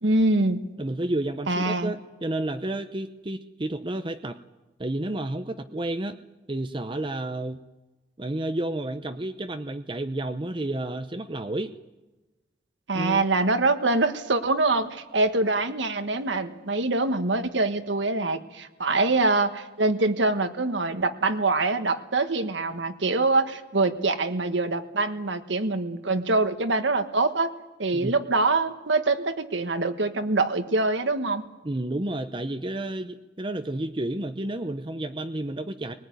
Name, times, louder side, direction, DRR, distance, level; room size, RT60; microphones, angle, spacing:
voice 1, 0.0-0.6 1.5-1.9 12.9-27.5 27.8-31.4, right 2 dB, 80° right, 8 dB, 1.5 m, -24 dB
voice 2, 0.8-4.4 4.8-6.2 6.5-7.6 8.2-11.7 12.9-13.3 27.9-28.2 31.6-35.9, right 1 dB, 25° right, 7 dB, 0.7 m, -31 dB
22.0 x 19.5 x 9.5 m, 1.1 s
head